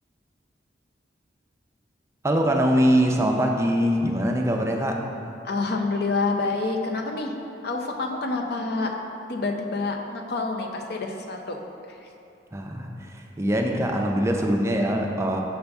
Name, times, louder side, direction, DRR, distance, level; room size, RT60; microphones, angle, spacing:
voice 1, 2.2-5.0 12.5-15.4, equal, 15° right, 2 dB, 0.4 m, -23 dB
voice 2, 5.4-7.3 7.6-8.9 9.3-11.6 11.9-12.0, left 3 dB, 60° left, 2 dB, 0.6 m, -27 dB
6.7 x 5.5 x 3.4 m, 2.6 s
head